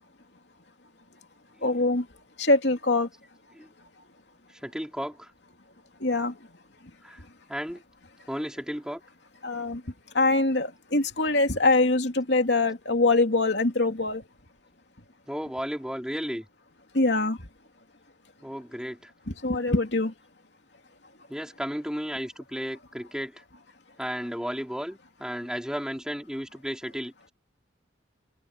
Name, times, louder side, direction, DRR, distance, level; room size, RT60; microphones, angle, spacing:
voice 1, 1.6-2.1 2.4-3.1 6.0-6.3 9.4-9.8 10.1-14.2 16.9-17.4 19.3-20.1, left 2 dB, 70° left, 2.9 m, -23 dB
voice 2, 4.5-5.3 7.0-7.2 7.5-7.8 8.3-9.0 15.3-16.5 18.4-19.1 21.3-23.4 24.0-27.3, equal, 5° right, 5.1 m, -34 dB
head